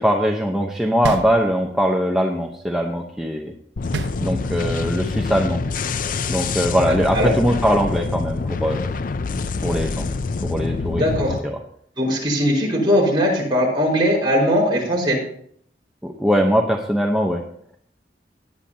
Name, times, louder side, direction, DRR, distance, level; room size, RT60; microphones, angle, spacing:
voice 1, 0.0-3.5 4.2-5.6 6.3-8.9 9.6-10.1 10.4-11.0 11.4-11.6 16.0-17.4, equal, 5° right, 0 dB, 0.9 m, -21 dB
sound 1, 1.0-2.0 3.9-4.8, right 3 dB, 75° right, 0.7 m, -29 dB
sound 2, 3.8-11.4, left 4 dB, 50° left, 0.5 m, -26 dB
voice 2, 10.9-11.4 12.0-15.2, equal, 25° right, -3 dB, 5.0 m, -19 dB
17.5 x 10.5 x 2.9 m, 0.63 s
head